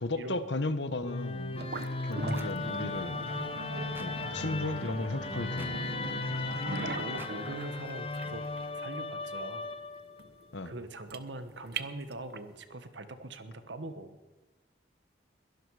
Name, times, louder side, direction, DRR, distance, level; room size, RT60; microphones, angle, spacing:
voice 1, 0.0-1.7 2.0-3.2 3.8-5.8 10.5-10.7, left 2 dB, 75° left, 11 dB, 1.1 m, -35 dB
Musical instrument, 1.0-10.2, left 3 dB, 30° left, 0.8 m, -37 dB
sound 1, 1.5-12.6, right 3 dB, 55° right, 0.8 m, -41 dB
sound 2, 2.3-2.5 3.9-4.1 5.6-5.7 7.2-7.3, right 2 dB, 10° right, 0.6 m, -47 dB
voice 2, 6.3-8.5 8.7-9.7 10.6-14.2, right 2 dB, 75° right, 10 dB, 1.3 m, -42 dB
22.0 x 12.0 x 4.9 m, 1.2 s
head